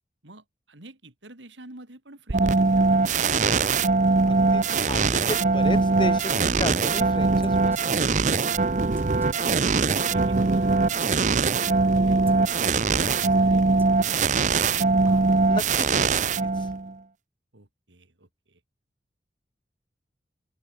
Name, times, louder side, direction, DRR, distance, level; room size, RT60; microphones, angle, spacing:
voice 1, 0.2-3.9 9.5-12.2 12.6-14.8 17.5-18.6, right 1 dB, 85° right, 3.3 m, -49 dB
sound 1, 2.3-16.9, right 4 dB, 40° right, 0.6 m, -22 dB
voice 2, 4.3-8.0 15.5-16.1 16.6-16.7, left 1 dB, 25° left, 2.3 m, -34 dB
Female speech woman speaking, 7.4-11.7 12.3-16.2, right 1 dB, 10° right, 2.2 m, -51 dB
open air
head